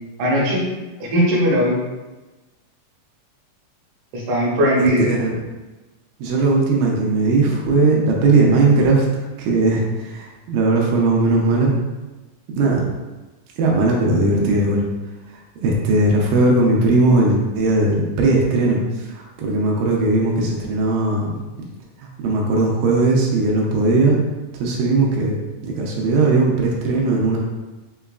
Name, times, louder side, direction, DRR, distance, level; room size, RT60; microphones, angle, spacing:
voice 1, 0.2-0.6 1.0-1.7 4.1-5.1, equal, 70° right, -5 dB, 2.1 m, -18 dB
voice 2, 4.8-5.3 6.2-11.8 12.5-12.8 13.6-21.4 22.0-24.2 24.5-25.4 25.6-27.4, right 2 dB, 90° right, -2 dB, 2.3 m, -18 dB
5.6 x 2.3 x 2.3 m, 1.1 s
omnidirectional pair, 3.8 m